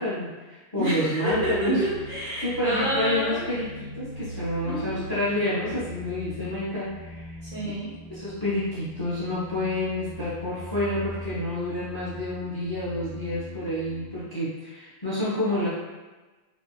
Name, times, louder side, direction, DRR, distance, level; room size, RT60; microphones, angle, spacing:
voice 1, 0.0-1.8 2.4-7.4 8.1-15.7, left 1 dB, 25° left, -10 dB, 0.6 m, -29 dB
voice 2, 0.7-3.4 4.6-5.0 7.4-7.9, equal, 45° right, -12 dB, 1.0 m, -29 dB
sound 1, 1.3-14.2, right 1 dB, 60° right, 1.4 m, -41 dB
2.9 x 2.7 x 2.3 m, 1.2 s
omnidirectional pair, 1.1 m